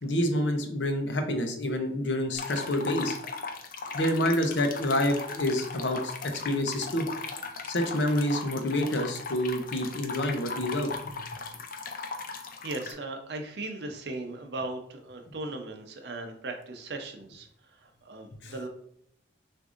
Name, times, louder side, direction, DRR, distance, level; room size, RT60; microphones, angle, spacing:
voice 1, 0.0-3.1 3.9-6.1 6.4-7.1 7.7-11.1 18.4-18.5, left 1 dB, 85° left, 5 dB, 0.7 m, -28 dB
sound 1, 2.3-12.9, left 4 dB, 50° left, 0.5 m, -38 dB
voice 2, 12.6-17.5 17.8-18.7, right 2 dB, 70° right, 4 dB, 0.7 m, -38 dB
6.2 x 2.6 x 2.5 m, 0.68 s
head